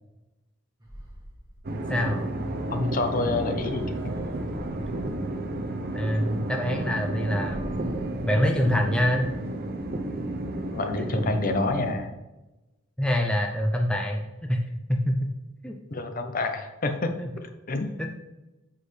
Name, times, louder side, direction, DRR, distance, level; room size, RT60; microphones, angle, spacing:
sound 1, 0.8-1.9 3.4-5.2 6.0-6.4 6.7-6.8 7.1-8.4, equal, 20° right, 1.4 m, -42 dB
sound 2, 1.6-11.9, right 1 dB, 45° right, 0.7 m, -32 dB
voice 1, 1.9-2.3 5.9-7.6 8.2-9.3 13.0-14.6 14.9-15.3 15.6-15.7 17.2-17.3 18.0-18.1, equal, 5° left, 2 dB, 0.5 m, -25 dB
voice 2, 2.7-3.9 10.7-12.1 15.9-17.1 17.4-18.0, left 3 dB, 40° left, 7 dB, 0.7 m, -28 dB
7.5 x 6.2 x 3.3 m, 1.0 s
head